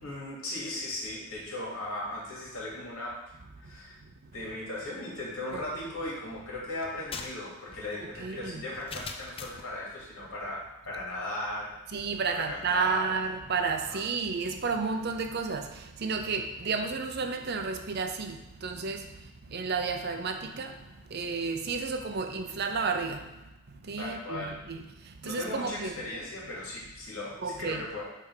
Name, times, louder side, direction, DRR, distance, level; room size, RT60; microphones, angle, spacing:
voice 1, 0.0-3.2 3.6-4.0 4.3-11.7 12.3-13.1 13.8-14.0 24.0-24.5 25.2-28.0, left 1 dB, 65° left, -5 dB, 2.6 m, -37 dB
voice 2, 5.5-5.9 8.0-8.6 11.9-15.7 16.0-19.0 19.5-20.7 21.1-23.2 23.9-24.8 25.3-26.0 27.4-27.8, right 4 dB, 45° right, 6 dB, 0.6 m, -31 dB
sound 1, 6.8-9.7, left 4 dB, 25° left, 0.5 m, -42 dB
8.3 x 3.4 x 4.8 m, 1.0 s
head